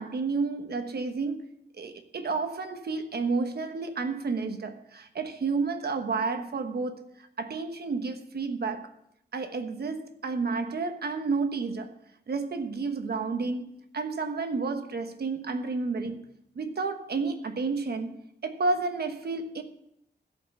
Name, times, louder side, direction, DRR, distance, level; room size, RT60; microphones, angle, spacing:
voice 1, 0.0-1.5 1.8-8.9 9.3-11.9 12.3-13.7 13.9-16.2 16.5-18.1 18.4-19.6, right 4 dB, 60° right, 1.2 m, -31 dB
16.5 x 5.5 x 6.9 m
wide cardioid pair, 155°, 19 cm